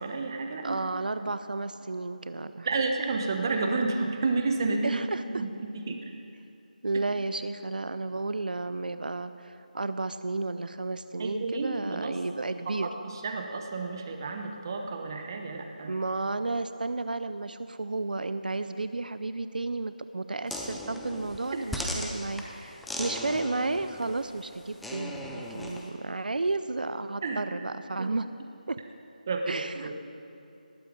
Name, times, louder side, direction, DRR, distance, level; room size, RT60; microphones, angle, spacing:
voice 1, 0.0-0.8 2.6-5.0 5.3-6.1 11.2-12.2 12.6-15.9 27.2-27.4 28.0-28.1 29.3-29.9, right 3 dB, 25° right, 4 dB, 1.1 m, -31 dB
voice 2, 0.6-2.7 4.8-5.4 6.8-12.9 15.9-28.3 28.7-28.8 29.5-29.9, right 3 dB, 70° right, 12 dB, 0.6 m, -32 dB
sound 1, 20.5-25.9, left 1 dB, ahead, 0.4 m, -38 dB
19.0 x 8.5 x 5.3 m, 2.6 s
figure-of-eight pair, 170°, 5 cm